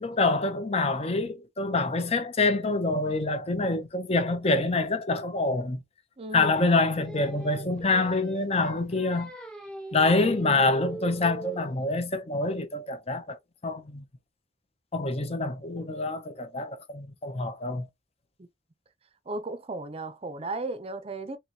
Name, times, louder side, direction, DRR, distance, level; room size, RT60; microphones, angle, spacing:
voice 1, 0.0-5.8 6.3-9.3 9.9-13.4 13.6-14.0 14.9-17.9, left 3 dB, 35° left, 0.7 m, -26 dB
voice 2, 6.2-6.6 18.4-18.5 19.3-21.4, right 2 dB, 30° right, 0.6 m, -35 dB
Singing, 6.6-11.8, right 1 dB, 5° left, 0.9 m, -41 dB
3.9 x 3.1 x 2.8 m
head